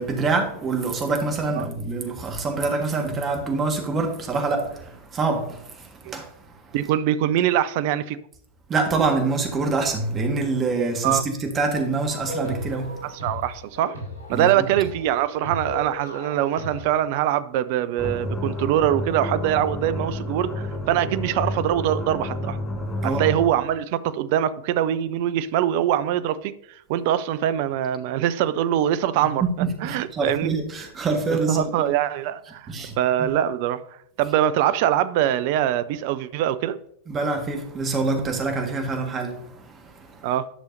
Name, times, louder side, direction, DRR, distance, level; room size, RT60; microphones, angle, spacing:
voice 1, 0.0-6.7 8.7-13.1 14.3-14.6 23.0-23.2 29.4-31.9 32.7-33.3 37.1-40.3, right 3 dB, 25° right, 1.5 m, -26 dB
voice 2, 6.7-8.2 11.0-11.2 13.0-14.0 14.3-22.6 23.0-29.4 29.8-30.5 31.5-33.8 34.2-36.8 40.2-40.5, right 11 dB, 50° right, 0.5 m, -23 dB
sound 1, 11.9-16.9, equal, 80° right, 3.4 m, -36 dB
sound 2, 18.0-23.6, left 1 dB, 10° left, 2.1 m, -30 dB
11.0 x 6.3 x 2.7 m
figure-of-eight pair, 90°, 0 cm